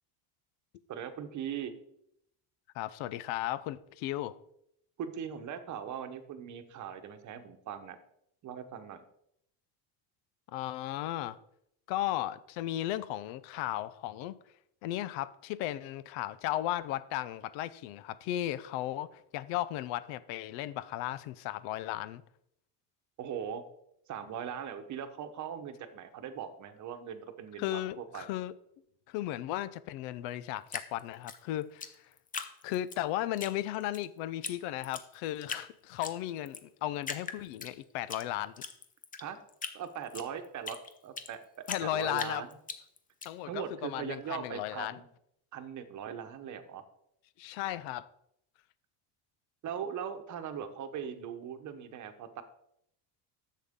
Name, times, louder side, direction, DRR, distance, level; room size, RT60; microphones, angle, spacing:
voice 1, 0.9-1.7 5.0-8.0 8.4-9.0 23.2-23.6 24.1-28.3 39.2-39.4 39.7-40.8 41.0-41.4 41.8-42.5 43.5-45.1 45.5-46.8 49.6-52.4, right 8 dB, 45° right, 1.0 m, -40 dB
voice 2, 2.7-4.4 10.5-11.4 11.9-14.3 14.8-22.2 27.6-28.5 29.1-31.9 32.6-38.6 41.7-42.4 43.2-45.0 47.4-48.1, left 14 dB, 80° left, 0.6 m, -35 dB
Drip, 30.7-33.0 33.4-34.0 34.4-34.5 34.8-35.7 36.0-36.6 37.0-38.2 38.6-41.3 41.7-43.3, left 5 dB, 20° left, 0.6 m, -40 dB
10.5 x 7.5 x 3.6 m
cardioid pair, 135°, 42 cm